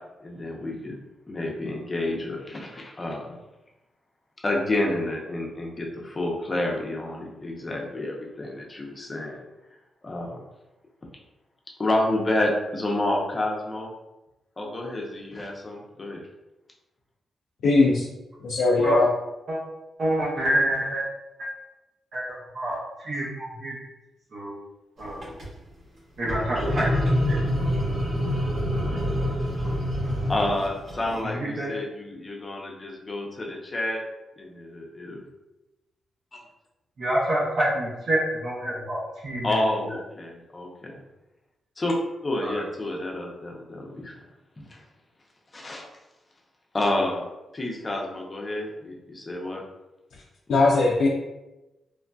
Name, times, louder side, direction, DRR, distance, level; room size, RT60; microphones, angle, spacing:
voice 1, 0.2-1.0 1.3-3.4 4.4-9.4 10.0-10.4 11.8-13.9 14.6-16.2 30.3-34.0 34.4-35.2 36.3-36.4 39.4-41.0 41.8-42.0 42.2-44.1 44.6-44.8 45.5-45.8 46.7-47.2 47.5-49.6, left 1 dB, 25° left, -1 dB, 0.5 m, -29 dB
voice 2, 17.6-18.1 18.4-19.1 50.5-51.1, left 3 dB, 80° left, -4 dB, 0.4 m, -19 dB
voice 3, 20.0-21.0 21.4-21.5 22.1-22.3 22.5-23.8 24.3-24.5 25.0-25.2 26.2-26.9 27.3-27.4 31.4-31.7 37.0-39.5 42.4-42.6, right 1 dB, 55° right, -6 dB, 0.6 m, -27 dB
sound 1, 25.1-25.5 26.2-31.2, equal, 75° right, 1.3 m, -26 dB
3.1 x 2.5 x 2.2 m, 1.0 s
wide cardioid pair, 135°, 0 cm